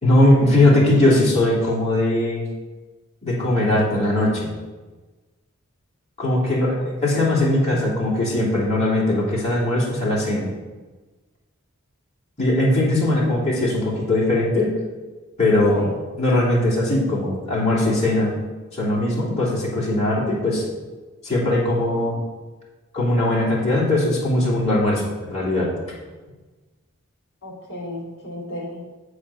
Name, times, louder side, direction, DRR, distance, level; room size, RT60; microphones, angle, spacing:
voice 1, 0.0-2.5 3.2-4.5 6.2-10.5 12.4-14.7 15.4-15.9 16.2-18.3 18.7-20.6 21.2-22.2 22.9-25.7, left 1 dB, 30° left, -6 dB, 2.7 m, -20 dB
voice 2, 6.8-7.3 15.8-16.0 27.4-28.9, left 1 dB, 50° left, -1 dB, 2.1 m, -35 dB
8.1 x 4.9 x 5.4 m, 1.3 s
head